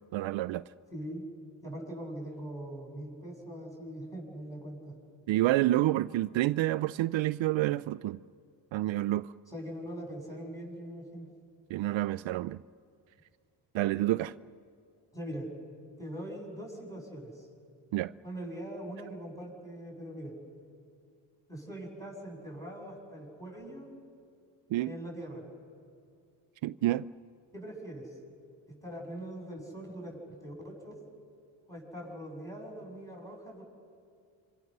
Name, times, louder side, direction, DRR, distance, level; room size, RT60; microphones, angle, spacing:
voice 1, 0.1-0.6 5.3-8.2 8.7-9.3 11.7-12.6 13.7-14.3 17.9-18.1 24.7-24.9 26.6-27.1, right 15 dB, 70° right, 0.5 m, -28 dB
voice 2, 0.9-1.2 1.6-5.0 9.5-11.3 15.1-15.5 16.0-17.5 18.2-20.3 21.5-23.9 24.8-25.4 27.5-28.1 28.7-30.9 31.7-33.6, right 1 dB, 5° left, 7.8 m, -42 dB
27.0 x 25.5 x 6.7 m
cardioid pair, 90°, 48 cm